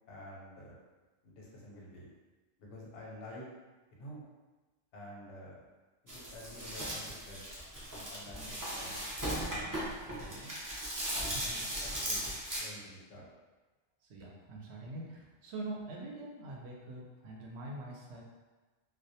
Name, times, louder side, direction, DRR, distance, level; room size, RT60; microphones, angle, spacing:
voice 1, 0.1-0.8 1.2-2.1 2.6-3.5 3.9-4.2 4.9-5.7 6.0-7.5 7.9-9.0 9.6-10.5 11.1-13.2, left 1 dB, 90° left, -3 dB, 1.0 m, -49 dB
sound 1, 6.1-12.6, right 1 dB, 30° right, 0.3 m, -38 dB
voice 2, 8.3-8.6 11.3-11.8 12.1-12.3 14.1-18.2, right 2 dB, 75° right, -1 dB, 0.8 m, -44 dB
2.2 x 2.1 x 2.7 m, 1.2 s
omnidirectional pair, 1.2 m